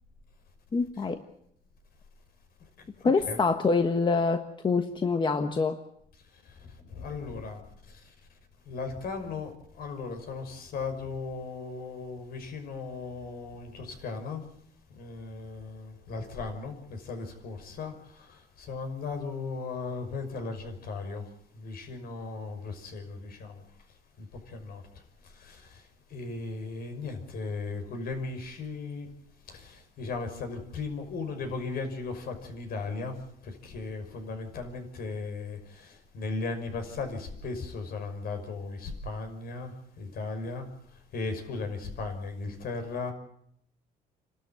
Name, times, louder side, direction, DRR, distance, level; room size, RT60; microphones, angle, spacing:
voice 1, 0.7-1.2 3.0-4.4 4.6-5.8, left 4 dB, 30° left, 1.4 m, -25 dB
voice 2, 6.3-8.1 8.7-14.4 14.9-23.6 24.2-24.8 25.2-29.1 29.5-33.2 33.4-40.7 40.9-43.1, left 4 dB, 60° left, 5.8 m, -37 dB
28.5 x 13.0 x 9.3 m
cardioid pair, 110°, 17 cm